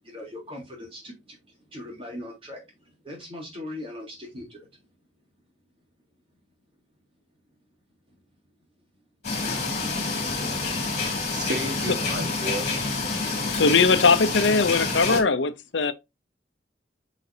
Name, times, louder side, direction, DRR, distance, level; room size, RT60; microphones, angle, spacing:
voice 1, 0.0-4.8 8.1-8.2, left 1 dB, 30° right, 3.5 m, -41 dB
sound 1, 9.2-15.2, left 3 dB, 40° left, 2.9 m, -28 dB
voice 2, 10.5-12.7, right 1 dB, 65° right, 1.6 m, -34 dB
voice 3, 13.5-15.9, left 4 dB, 75° left, 0.7 m, -20 dB
8.2 x 5.0 x 2.8 m
head